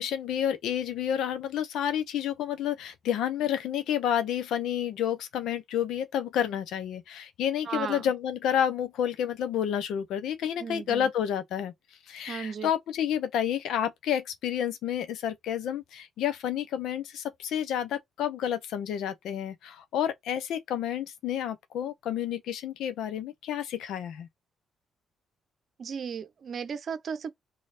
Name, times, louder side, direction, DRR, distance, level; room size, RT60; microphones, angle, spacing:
voice 1, 0.0-11.7 12.1-24.3, left 9 dB, 80° left, 0.6 m, -30 dB
voice 2, 7.7-8.0 10.6-11.1 12.3-12.7 25.8-27.3, right 6 dB, 50° right, 0.7 m, -35 dB
3.2 x 2.4 x 4.1 m
cardioid pair, 90°, 0 cm